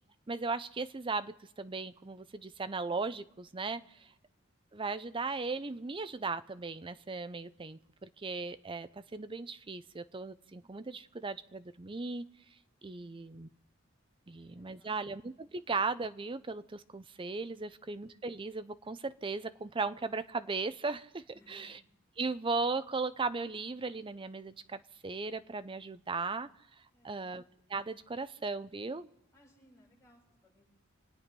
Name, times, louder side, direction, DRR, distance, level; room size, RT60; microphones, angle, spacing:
voice 1, 0.3-4.1 4.7-12.3 12.8-13.5 14.3-21.2 21.5-21.7 22.2-26.5 27.0-27.4 27.7-29.1, right 4 dB, 25° right, 12 dB, 0.6 m, -37 dB
voice 2, 3.8-4.2 14.2-15.0 21.3-21.9 26.9-27.4 29.3-30.6, left 1 dB, 15° left, -5 dB, 7.1 m, -66 dB
27.5 x 9.2 x 5.3 m, 0.79 s
head